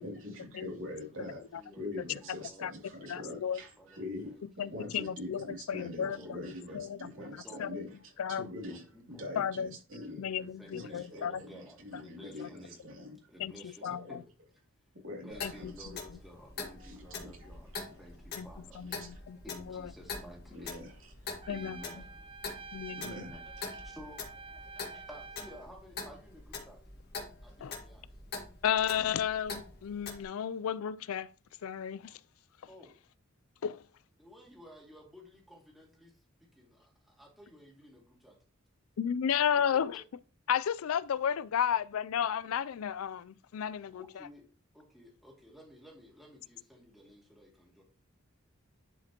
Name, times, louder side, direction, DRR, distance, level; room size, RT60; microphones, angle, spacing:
voice 1, 0.0-1.4 1.8-4.4 4.7-10.3 10.7-13.2 13.9-14.2 14.9-15.9 16.6-17.5 17.9-18.0 18.7-19.2 20.5-21.1 22.9-23.4 23.7-23.8, left 1 dB, 65° right, 2.8 m, -44 dB
voice 2, 1.1-2.6 3.0-3.4 3.8-4.8 6.0-6.4 6.7-7.8 8.6-9.3 10.4-12.9 13.3-14.2 15.2-17.7 18.0-18.8 19.4-20.8 21.3-22.2 23.1-24.2 24.7-26.8 27.4-28.0 32.7-32.9 34.2-36.1 36.4-38.3 43.8-44.4 44.7-47.8, equal, ahead, 2.3 m, -53 dB
voice 3, 3.1-3.6 4.6-6.4 6.7-7.0 7.6-7.8 8.2-8.5 9.4-9.7 10.2-11.3 13.4-13.5 13.8-14.0 15.4-15.7 18.4-18.5 18.8-19.4 19.7-19.9 21.5-21.8 22.7-23.1 27.6-27.7 28.6-31.3 31.6-32.1 33.6-33.8 39.0-40.0 40.5-44.0, left 8 dB, 85° left, 0.4 m, -32 dB
Clock, 15.3-30.2, left 4 dB, 50° left, 1.7 m, -44 dB
Trumpet, 21.4-25.7, right 4 dB, 25° right, 0.5 m, -48 dB
10.5 x 5.0 x 2.9 m
head